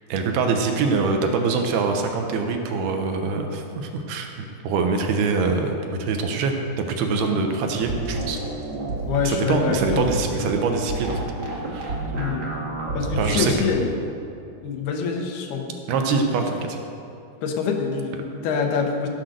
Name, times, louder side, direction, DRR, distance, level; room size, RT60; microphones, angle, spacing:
voice 1, 0.1-8.4 9.2-11.3 11.6-11.9 13.2-13.5 15.9-16.8, right 4 dB, 75° right, 4 dB, 2.8 m, -24 dB
sound 1, 7.8-13.8, right 2 dB, 40° right, 1.5 m, -30 dB
voice 2, 9.1-10.1 12.1-12.5 12.9-14.0 14.6-15.8 17.4-19.1, left 5 dB, 75° left, 3 dB, 3.0 m, -25 dB
16.0 x 7.9 x 6.5 m, 2.6 s
omnidirectional pair, 4.8 m